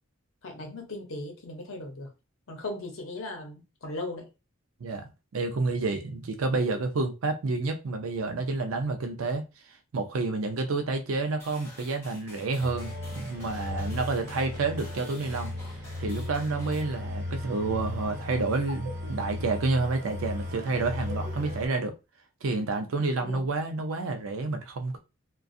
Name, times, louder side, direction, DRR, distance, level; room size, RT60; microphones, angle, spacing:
voice 1, 0.4-2.1 2.5-4.3 23.2-23.4, left 2 dB, 75° left, 0.7 m, -37 dB
voice 2, 4.8-9.4 9.9-15.5 16.0-22.0 22.4-25.0, right 3 dB, 85° right, 0.5 m, -29 dB
sound 1, 11.4-16.8, left 1 dB, 15° left, 1.1 m, -49 dB
sound 2, 12.6-21.7, left 2 dB, 50° right, 1.1 m, -36 dB
2.4 x 2.2 x 2.5 m
head